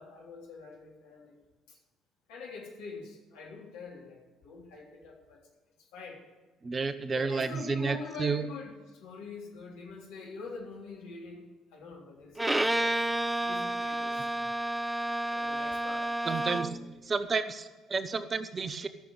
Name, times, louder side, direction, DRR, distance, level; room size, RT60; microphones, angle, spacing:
voice 1, 0.0-1.3 1.7-1.8 2.3-5.4 5.9-6.2 7.1-11.4 11.7-13.0 13.4-14.3 15.3-16.1 16.4-16.8, left 4 dB, 65° left, -2 dB, 3.4 m, -44 dB
voice 2, 6.6-8.4 16.2-16.7 17.0-18.9, right 4 dB, 35° right, 13 dB, 0.9 m, -31 dB
Bowed string instrument, 12.4-16.9, right 1 dB, 10° right, 0.4 m, -30 dB
14.0 x 6.8 x 9.0 m, 1.3 s
figure-of-eight pair, 50°, 0 cm